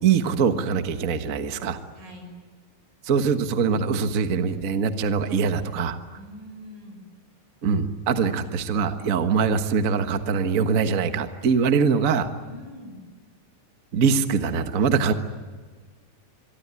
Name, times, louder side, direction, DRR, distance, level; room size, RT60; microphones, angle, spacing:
voice 1, 0.0-1.8 3.0-6.0 7.6-12.3 13.9-15.1, right 6 dB, 85° right, 7 dB, 0.7 m, -23 dB
voice 2, 2.0-2.3 6.1-7.0 12.4-13.0, left 1 dB, 60° right, 4 dB, 7.7 m, -43 dB
25.5 x 23.0 x 9.6 m, 1.4 s
omnidirectional pair, 3.9 m